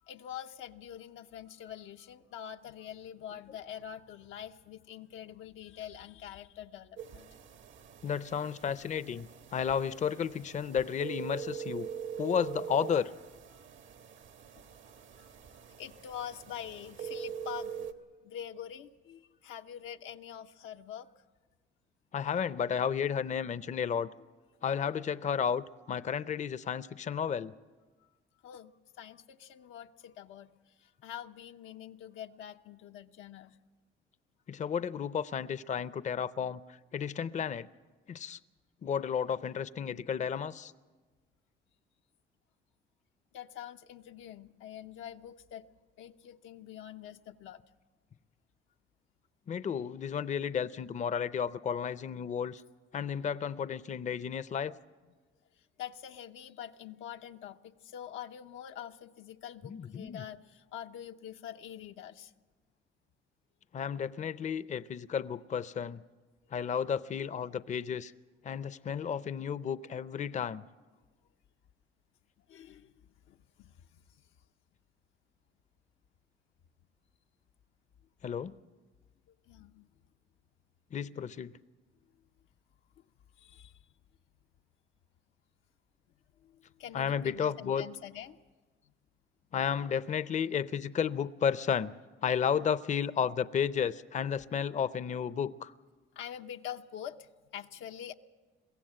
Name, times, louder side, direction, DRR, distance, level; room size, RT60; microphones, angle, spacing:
voice 1, 0.0-7.3 13.5-13.6 15.2-17.9 18.2-21.1 28.0-28.1 28.4-33.6 43.3-45.7 46.0-47.6 55.8-62.3 72.5-74.0 79.5-79.9 83.0-83.1 83.4-83.8 86.4-88.4 96.2-98.1, left 10 dB, 90° left, 6 dB, 0.7 m, -45 dB
sound 1, 7.0-17.9, right 8 dB, 75° right, 1.3 m, -43 dB
voice 2, 8.0-11.9 12.2-13.1 22.1-24.1 24.6-27.5 34.5-37.7 38.1-38.4 38.8-40.7 49.5-52.6 52.9-54.7 59.7-60.2 63.7-66.0 66.5-68.1 68.4-70.6 78.2-78.5 80.9-81.5 86.9-87.8 89.5-91.9 92.2-95.7, left 7 dB, 40° left, 15 dB, 0.5 m, -32 dB
22.5 x 16.0 x 7.7 m, 1.3 s
cardioid pair, 90°, 20 cm